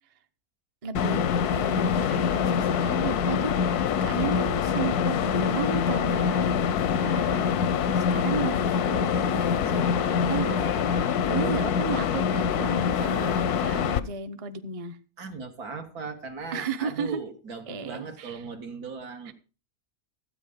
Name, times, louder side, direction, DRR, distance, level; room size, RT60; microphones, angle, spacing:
voice 1, 0.8-6.7 6.9-7.7 8.0-15.0 16.5-17.2 17.7-18.4 19.3-19.4, right 5 dB, 30° right, 0.7 m, -34 dB
sound 1, 0.9-14.0, left 7 dB, 80° left, 1.3 m, -25 dB
sound 2, 8.6-13.8, right 4 dB, 60° right, 2.6 m, -42 dB
voice 2, 11.0-11.7 15.2-19.3, right 5 dB, 75° right, 2.1 m, -38 dB
13.5 x 8.7 x 5.1 m
omnidirectional pair, 1.6 m